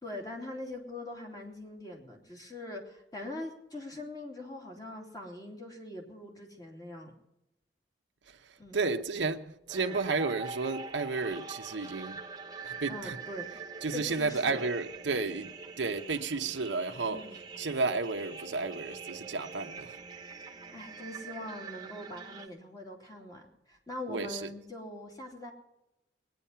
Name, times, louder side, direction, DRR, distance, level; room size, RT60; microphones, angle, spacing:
voice 1, 0.0-7.1 8.6-8.8 12.9-13.5 13.9-14.6 17.1-17.4 20.7-25.5, left 1 dB, 20° left, 2.9 m, -42 dB
voice 2, 8.3-12.2 12.6-13.2 13.8-17.2 17.6-20.0 24.1-24.5, right 4 dB, 90° right, 0.9 m, -32 dB
sound 1, 9.7-22.5, right 5 dB, 25° right, 1.2 m, -44 dB
20.5 x 9.7 x 5.7 m
head